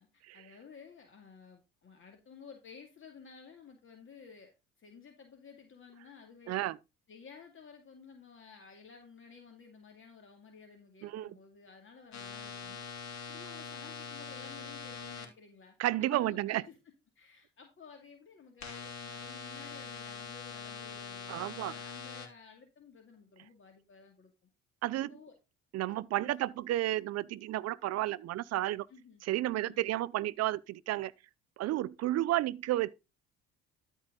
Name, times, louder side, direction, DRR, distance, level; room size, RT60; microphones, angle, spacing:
voice 1, 0.0-6.7 7.1-12.8 13.3-16.8 17.2-24.3 25.1-25.3 25.9-26.3 28.9-29.2 29.7-29.9, left 5 dB, 45° left, 2.3 m, -54 dB
voice 2, 6.5-6.8 11.0-11.4 15.8-16.6 21.3-21.7 24.8-25.1 25.7-28.9 29.2-31.1 31.6-32.9, right 15 dB, 60° right, 0.7 m, -32 dB
sound 1, 12.1-15.3 18.6-22.3, left 5 dB, 65° left, 2.9 m, -43 dB
13.0 x 4.7 x 3.9 m
supercardioid pair, 70°, 30 cm